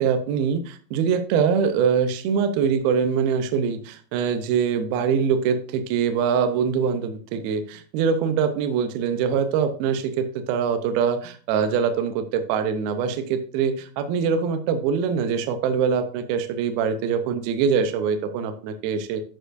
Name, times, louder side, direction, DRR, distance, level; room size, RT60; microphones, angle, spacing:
voice 1, 0.0-19.2, right 6 dB, 80° right, 7 dB, 2.5 m, -23 dB
13.5 x 4.6 x 2.5 m, 0.42 s
omnidirectional pair, 4.5 m